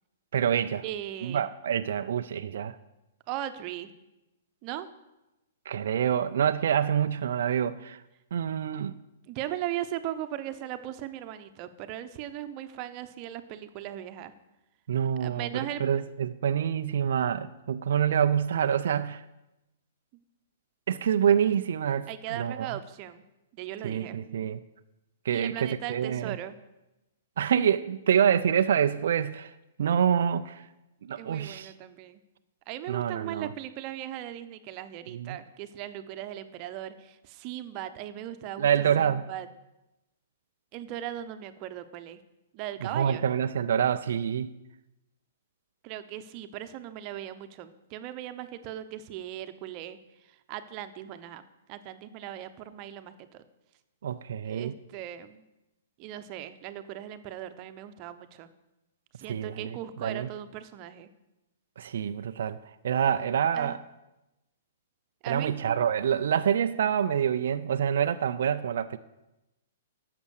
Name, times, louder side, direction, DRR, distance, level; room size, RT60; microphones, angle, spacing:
voice 1, 0.3-0.8 1.2-2.7 5.7-8.0 8.3-8.9 14.9-19.2 20.9-22.7 23.8-24.6 25.2-26.4 27.4-29.5 29.8-30.6 31.0-31.7 32.9-33.5 35.1-35.4 38.6-39.2 42.8-44.5 54.0-54.7 59.3-60.3 61.8-62.6 62.8-63.8 65.3-69.0, right 8 dB, 65° right, 0.5 m, -26 dB
voice 2, 0.8-1.5 3.3-3.9 4.6-4.9 9.3-14.3 15.2-15.8 22.1-23.2 23.5-24.2 25.3-26.6 31.2-32.2 32.7-38.7 39.0-39.5 40.7-42.2 42.5-43.3 45.8-50.0 50.5-51.4 51.7-53.4 54.4-55.4 56.0-58.5 59.2-61.1 63.6-63.8 65.2-65.8, right 12 dB, 40° right, 0.9 m, -38 dB
11.5 x 7.4 x 6.5 m
figure-of-eight pair, 115°, 0 cm